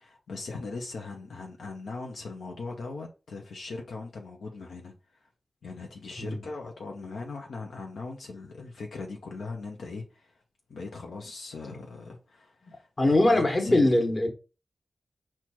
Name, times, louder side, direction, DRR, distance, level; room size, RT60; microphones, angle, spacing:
voice 1, 0.0-5.2 5.6-10.4 10.7-14.0, left 3 dB, 85° left, 0.7 m, -39 dB
voice 2, 13.0-14.3, left 1 dB, 40° left, 1.4 m, -22 dB
4.4 x 2.4 x 4.3 m
cardioid pair, 45°, 0 cm